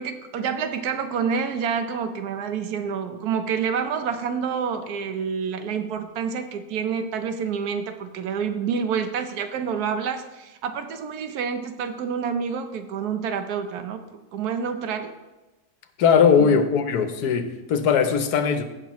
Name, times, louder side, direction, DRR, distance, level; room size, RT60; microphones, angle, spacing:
voice 1, 0.0-15.1 16.4-16.6, right 6 dB, 80° right, 8 dB, 1.3 m, -28 dB
voice 2, 16.0-18.6, left 6 dB, 85° left, 9 dB, 1.3 m, -19 dB
16.5 x 5.9 x 3.0 m, 1.1 s
omnidirectional pair, 1.6 m